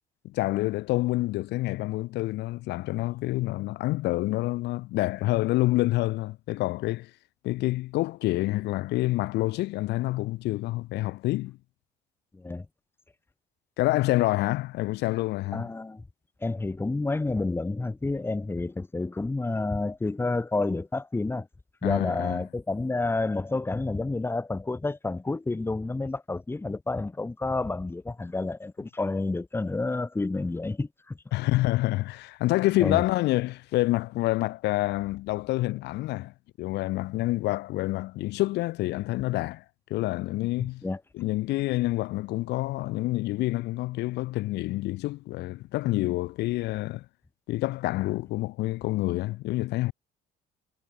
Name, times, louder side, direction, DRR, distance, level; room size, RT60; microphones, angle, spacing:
voice 1, 0.2-7.1 7.4-11.6 13.8-15.7 21.8-22.4 31.3-36.3 36.6-39.6 39.9-40.8 41.1-47.0 47.5-49.9, left 18 dB, 85° left, 4.3 m, -27 dB
voice 2, 12.3-12.7 15.5-16.0 16.4-21.5 21.8-31.2 32.8-33.0 40.8-41.0, left 3 dB, 15° left, 1.4 m, -29 dB
cardioid pair, 110°, 17 cm